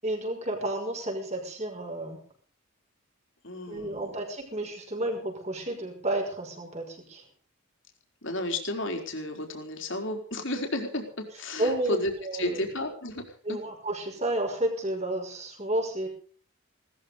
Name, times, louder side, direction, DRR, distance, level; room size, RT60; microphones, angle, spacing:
voice 1, 0.0-2.2 3.7-7.2 11.6-12.7 13.4-16.1, right 1 dB, 30° right, 2 dB, 5.9 m, -31 dB
voice 2, 3.4-4.1 8.2-13.6, left 1 dB, 55° left, 4 dB, 4.3 m, -33 dB
19.0 x 14.0 x 5.3 m, 0.42 s
head